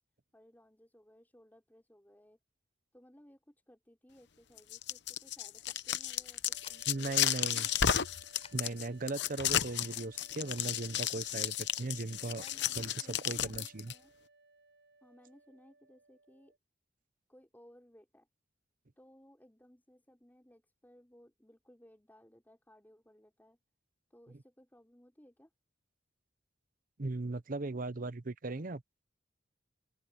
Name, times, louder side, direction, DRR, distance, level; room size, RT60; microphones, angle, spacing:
voice 1, 0.3-2.4 2.9-7.7 12.4-14.1 15.0-16.5 17.3-18.3 19.0-23.6 24.1-25.5, equal, 10° left, 4.9 m, -61 dB
sound 1, 4.6-13.9, left 10 dB, 65° left, 0.9 m, -33 dB
sound 2, 6.1-12.6, left 5 dB, 35° left, 6.5 m, -62 dB
sound 3, 6.5-16.6, right 3 dB, 85° right, 4.7 m, -63 dB
voice 2, 6.9-7.7 8.5-12.4 12.8-13.9 27.0-28.8, right 2 dB, 45° right, 0.8 m, -38 dB
open air
head